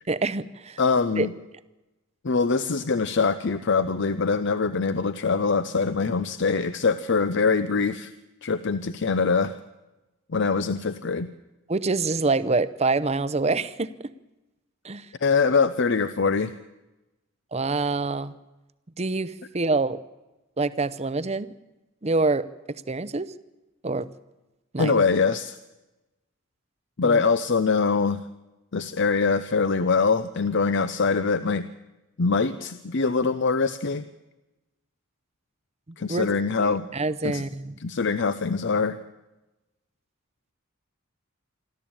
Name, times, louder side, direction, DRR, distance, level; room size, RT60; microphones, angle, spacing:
voice 1, 0.1-0.8 1.2-1.3 11.7-14.1 14.8-15.1 17.5-18.3 19.0-20.0 20.6-21.5 22.0-23.3 23.8-24.1 24.7-25.0 27.0-27.2 36.1-36.3 36.6-37.7, right 3 dB, 30° right, 16 dB, 0.7 m, -26 dB
voice 2, 0.8-1.3 2.2-8.1 8.4-9.6 10.3-11.3 15.2-16.5 24.8-25.6 27.0-28.2 28.7-31.7 32.2-34.1 36.0-36.9 37.2-37.4 37.8-39.0, left 4 dB, 60° left, 13 dB, 0.7 m, -23 dB
26.5 x 12.5 x 8.8 m, 1.0 s
head